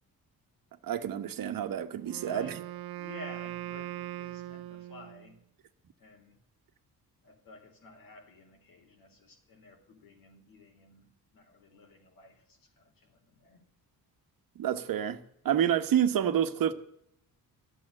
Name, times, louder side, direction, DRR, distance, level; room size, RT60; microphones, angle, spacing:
voice 1, 0.8-2.5 14.5-15.2 15.4-16.7, right 9 dB, 65° right, 1.2 m, -28 dB
Wind instrument woodwind instrument, 2.0-5.3, right 15 dB, 80° right, 0.8 m, -40 dB
voice 2, 2.2-2.6 3.0-5.4 6.0-6.4 7.2-13.7, left 2 dB, 65° left, 4.0 m, -52 dB
13.5 x 7.7 x 9.8 m
cardioid pair, 155°, 37 cm